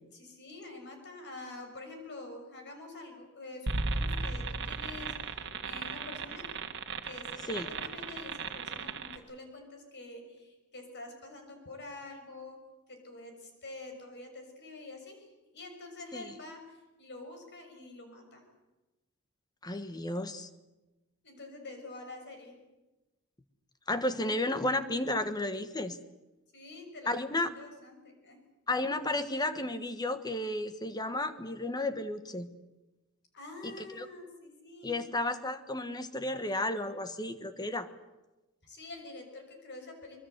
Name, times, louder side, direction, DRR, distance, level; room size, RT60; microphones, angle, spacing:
voice 1, 0.1-6.5 7.0-18.4 21.2-22.6 26.5-28.4 33.3-35.1 38.6-40.2, left 2 dB, 50° left, 5 dB, 6.1 m, -47 dB
sound 1, 3.7-9.2, right 3 dB, 55° right, 1.8 m, -36 dB
voice 2, 19.6-20.5 23.9-26.0 27.1-27.5 28.7-32.5 33.6-34.0 34.8-37.9, left 1 dB, 20° left, 10 dB, 1.3 m, -33 dB
24.5 x 22.0 x 8.1 m, 1.1 s
head